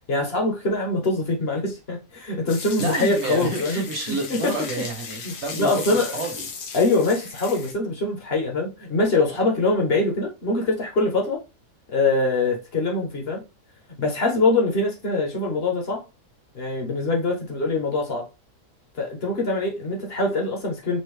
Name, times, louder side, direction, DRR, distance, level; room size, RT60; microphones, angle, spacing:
voice 1, 0.1-4.5 5.2-6.1 6.7-11.4 11.9-13.4 14.0-16.0 16.5-18.2 19.0-21.0, left 2 dB, 40° left, 1.3 m, -23 dB
sound 1, 2.5-7.7, left 5 dB, 70° left, 1.4 m, -37 dB
voice 2, 2.8-6.5, right 2 dB, 45° right, 1.4 m, -29 dB
4.4 x 2.8 x 3.3 m
omnidirectional pair, 1.7 m